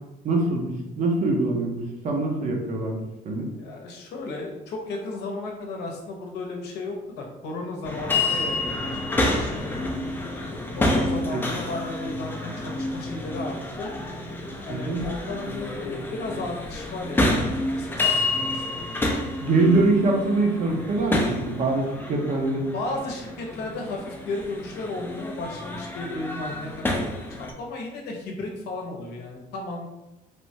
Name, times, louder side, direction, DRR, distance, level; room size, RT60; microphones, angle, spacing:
voice 1, 0.2-3.5 11.3-11.6 14.7-15.1 19.4-22.7, right 2 dB, 45° right, 1 dB, 0.7 m, -24 dB
voice 2, 3.6-10.1 10.8-13.9 14.7-18.8 22.7-29.8, left 2 dB, 75° left, 0 dB, 0.7 m, -34 dB
sound 1, 7.8-27.5, left 2 dB, 10° left, 0.4 m, -29 dB
3.2 x 2.1 x 2.7 m, 0.97 s
cardioid pair, 110°, 17 cm